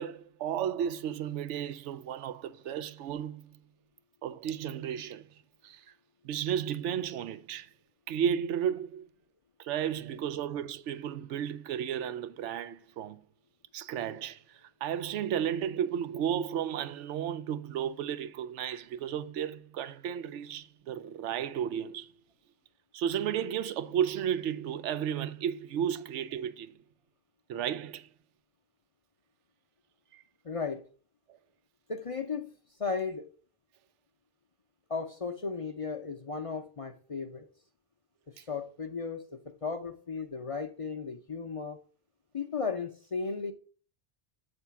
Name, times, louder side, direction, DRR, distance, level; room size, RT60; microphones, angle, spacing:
voice 1, 0.0-3.6 4.2-5.3 5.6-5.9 6.2-7.7 8.1-9.1 9.6-13.2 13.7-22.1 22.9-26.8 27.5-28.1 30.1-30.2 38.4-38.5, right 9 dB, 85° right, 0.9 m, -33 dB
voice 2, 30.4-30.8 31.9-32.5 32.8-33.3 34.9-37.4 38.3-41.8 42.3-43.5, left 5 dB, 45° left, 0.5 m, -35 dB
8.1 x 3.5 x 5.7 m
omnidirectional pair, 1.2 m